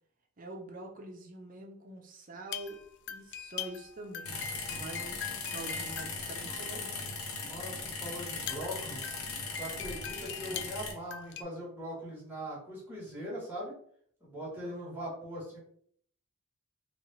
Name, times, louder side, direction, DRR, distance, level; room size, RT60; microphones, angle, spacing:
voice 1, 0.4-2.8 3.1-7.1 14.6-15.0, right 2 dB, 40° right, 2 dB, 0.7 m, -45 dB
sound 1, 2.5-7.4 7.9-8.0 8.1-11.4, left 8 dB, 55° left, 0.3 m, -43 dB
sound 2, 4.2-10.9, left 3 dB, 75° left, 0.8 m, -39 dB
voice 2, 7.4-9.1 9.6-13.7 14.2-15.6, equal, 10° right, -6 dB, 1.6 m, -41 dB
3.4 x 2.5 x 4.0 m, 0.62 s
head